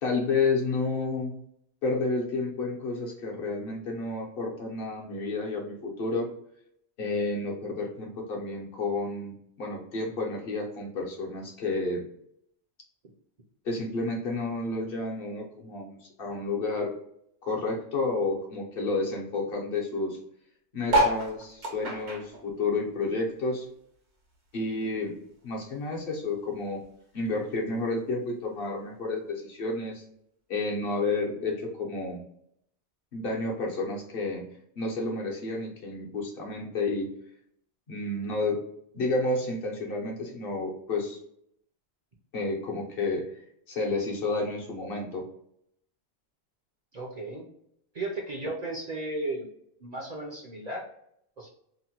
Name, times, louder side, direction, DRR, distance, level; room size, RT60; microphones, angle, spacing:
voice 1, 0.0-1.3 1.8-6.3 7.0-12.0 13.6-16.9 17.4-20.2 20.7-23.7 24.5-25.1 25.4-26.8 27.1-30.0 30.5-32.2 33.1-34.4 34.8-37.1 37.9-38.6 38.9-41.2 42.3-43.2 43.7-45.2, left 3 dB, 60° left, -1 dB, 0.9 m, -30 dB
sound 1, 20.8-23.6 24.0-25.5 26.0-26.1 26.2-26.3 26.5-26.9 27.7-27.8, right 1 dB, 80° right, 1.2 m, -29 dB
voice 2, 46.9-47.5 47.9-49.5 49.8-50.8 51.4-51.5, right 2 dB, 50° right, -1 dB, 0.6 m, -34 dB
2.9 x 2.1 x 2.8 m, 0.71 s
omnidirectional pair, 1.1 m